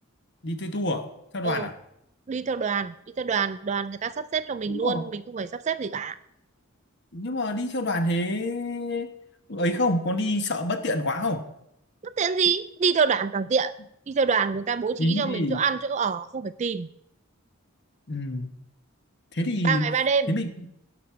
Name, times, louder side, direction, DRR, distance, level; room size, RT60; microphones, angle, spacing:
voice 1, 0.4-1.1 1.3-1.7 4.7-5.0 7.1-9.1 9.5-11.4 15.0-15.6 18.1-18.5 19.3-19.9 20.3-20.5, left 1 dB, 55° left, 8 dB, 1.1 m, -27 dB
voice 2, 2.3-6.2 12.0-13.7 14.1-16.9 19.6-20.3, right 5 dB, 35° right, 14 dB, 0.3 m, -26 dB
17.5 x 6.1 x 4.6 m, 0.78 s
head